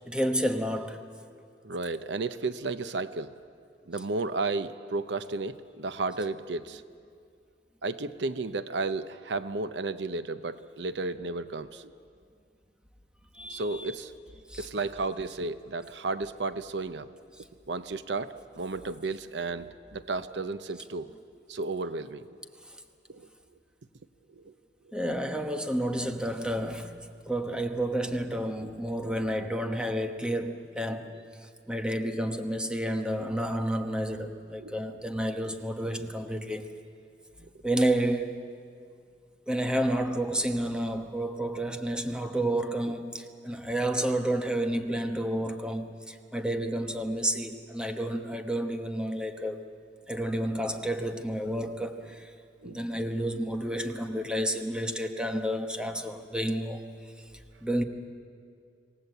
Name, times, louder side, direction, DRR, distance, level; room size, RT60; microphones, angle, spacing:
voice 1, 0.0-1.0 13.4-13.9 14.5-14.7 24.9-26.9 27.3-31.1 31.7-36.7 37.6-38.3 39.5-49.6 50.1-52.3 52.6-56.8 57.6-57.8, right 1 dB, 5° right, 6 dB, 1.1 m, -30 dB
voice 2, 1.6-3.3 3.9-6.8 7.8-11.9 13.5-14.1 14.6-17.1 17.7-21.1 21.5-22.4 23.1-23.3 24.4-24.5 34.6-34.8 52.6-52.8, right 3 dB, 80° right, 12 dB, 0.7 m, -33 dB
27.0 x 18.0 x 7.9 m, 2.3 s
head